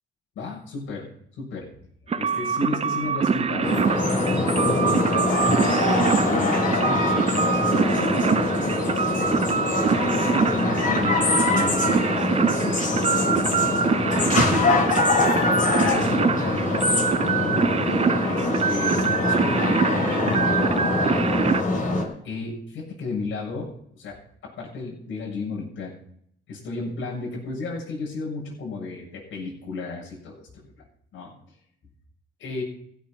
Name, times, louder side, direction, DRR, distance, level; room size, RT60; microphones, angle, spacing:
voice 1, 0.4-1.1 1.4-1.7 2.1-5.3 5.9-9.4 9.8-14.8 15.2-17.8 18.2-21.6 22.2-24.2 24.4-25.9 26.5-30.3 31.1-31.3 32.4-32.6, left 4 dB, 75° left, -4 dB, 7.4 m, -33 dB
sound 1, 2.1-21.6, right 6 dB, 30° right, 0.6 m, -25 dB
sound 2, 3.6-22.0, left 2 dB, 40° left, 5.5 m, -23 dB
16.0 x 9.0 x 5.9 m, 0.67 s
cardioid pair, 90°, 20 cm